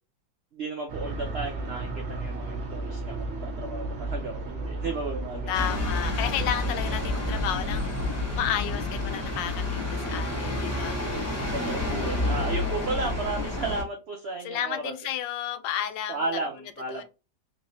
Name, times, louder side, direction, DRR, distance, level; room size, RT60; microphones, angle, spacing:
voice 1, 0.5-5.6 11.5-14.9 16.1-17.0, right 3 dB, 80° right, 0.5 m, -34 dB
sound 1, 0.9-13.8, right 2 dB, 50° right, 0.8 m, -35 dB
voice 2, 5.5-7.9 8.3-11.0 14.4-16.4 16.9-17.0, left 10 dB, 80° left, 1.2 m, -32 dB
sound 2, 5.5-13.8, left 2 dB, 10° left, 0.9 m, -30 dB
3.8 x 3.1 x 2.7 m
omnidirectional pair, 2.0 m